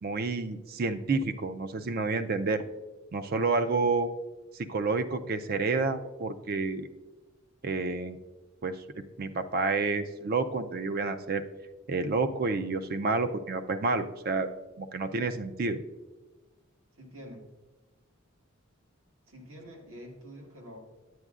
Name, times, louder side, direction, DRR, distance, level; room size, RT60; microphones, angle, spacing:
voice 1, 0.0-2.6 3.1-4.1 4.6-6.9 7.6-8.2 8.6-8.8 9.2-11.4 11.9-14.5 14.8-15.8, right 3 dB, 45° right, 10 dB, 0.4 m, -29 dB
voice 2, 16.9-17.4 19.3-20.8, equal, 75° right, 0 dB, 1.6 m, -46 dB
9.3 x 9.0 x 2.4 m, 1.2 s
head